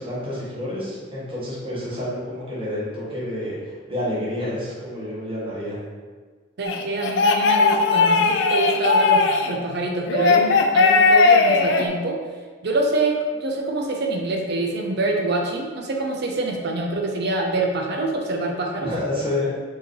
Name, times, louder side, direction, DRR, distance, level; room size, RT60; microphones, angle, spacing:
voice 1, 0.0-5.8 18.8-19.5, left 1 dB, 30° right, -9 dB, 1.4 m, -29 dB
sound 1, 6.6-9.5 10.1-11.8, left 4 dB, 65° left, 0.4 m, -17 dB
voice 2, 6.6-9.2 9.5-12.2 12.6-18.9, right 2 dB, 60° right, 1 dB, 0.6 m, -25 dB
4.7 x 3.0 x 3.1 m, 1.5 s
head